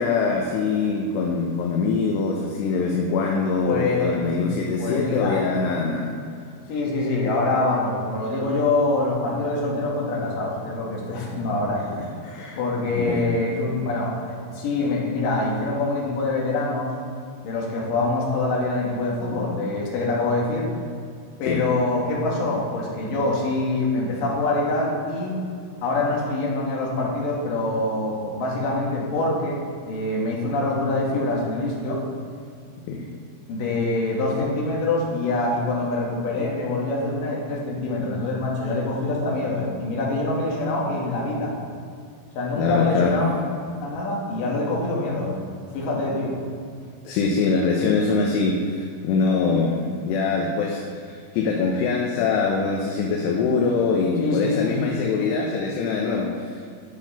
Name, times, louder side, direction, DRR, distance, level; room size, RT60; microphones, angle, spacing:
voice 1, 0.0-6.1 12.2-12.6 13.0-13.3 21.4-21.6 32.9-33.1 42.6-43.1 47.0-56.6, left 4 dB, 75° left, 0 dB, 2.7 m, -23 dB
voice 2, 3.6-4.3 4.8-5.4 6.7-11.8 12.6-16.9 17.4-20.7 21.4-25.4 25.8-29.6 29.9-32.0 33.5-41.5 42.3-43.3 43.8-45.4 45.7-46.3 54.2-55.2, left 2 dB, 55° left, -4 dB, 3.1 m, -25 dB
10.5 x 6.2 x 5.7 m, 2.3 s
omnidirectional pair, 5.4 m